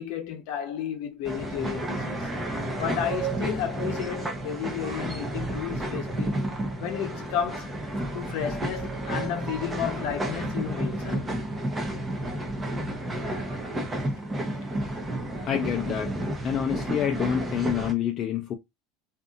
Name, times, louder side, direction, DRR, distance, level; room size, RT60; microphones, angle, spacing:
voice 1, 0.0-2.4 2.8-6.4 6.8-7.7 8.1-11.4, left 9 dB, 70° left, 0.7 m, -32 dB
sound 1, 1.2-17.9, right 1 dB, 15° right, 0.7 m, -31 dB
voice 2, 15.4-16.1 16.4-18.5, left 9 dB, 40° left, 0.4 m, -27 dB
2.6 x 2.6 x 2.4 m
supercardioid pair, 120°, 0 cm